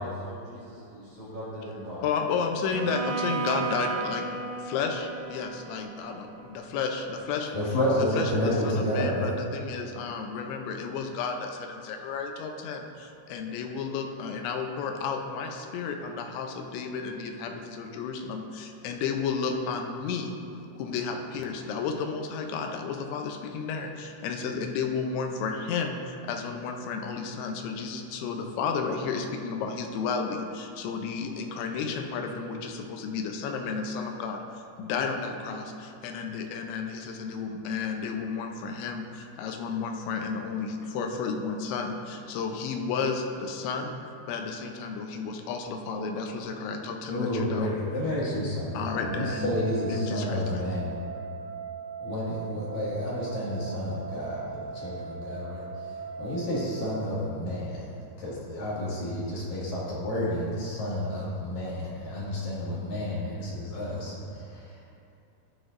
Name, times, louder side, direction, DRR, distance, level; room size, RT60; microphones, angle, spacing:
voice 1, 0.0-2.1, left 1 dB, 50° right, -11 dB, 3.2 m, -39 dB
voice 2, 2.0-4.3 4.6-7.5 8.0-20.4 20.8-34.4 34.8-43.9 44.3-47.7 48.7-49.4 49.9-50.6, left 5 dB, 80° left, 3 dB, 3.0 m, -32 dB
Bowed string instrument, 2.7-6.7, right 5 dB, 90° right, 2.0 m, -34 dB
voice 3, 7.5-9.3 47.1-51.0 52.0-55.6 56.2-57.9 58.2-64.1, left 1 dB, 55° left, -8 dB, 3.4 m, -30 dB
sound 1, 48.9-57.1, right 5 dB, 70° right, 2.6 m, -39 dB
14.0 x 9.8 x 2.6 m, 2.5 s
omnidirectional pair, 5.2 m